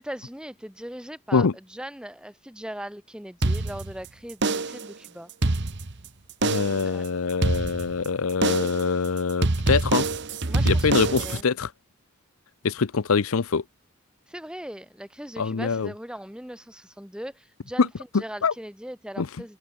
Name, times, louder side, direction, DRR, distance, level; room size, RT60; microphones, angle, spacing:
voice 1, 0.0-5.3 6.8-7.1 10.5-11.5 14.3-19.6, equal, 5° right, 2.6 m, -39 dB
sound 1, 3.4-4.1 4.4-4.9 5.3-6.1 6.4-6.9 7.4-8.1 8.4-8.9 9.4-11.4, right 2 dB, 55° right, 1.3 m, -25 dB
voice 2, 6.4-10.1 10.7-11.7 12.6-13.6 15.4-15.9 17.8-17.9 18.4-18.5 19.2-19.3, left 5 dB, 80° left, 0.7 m, -24 dB
head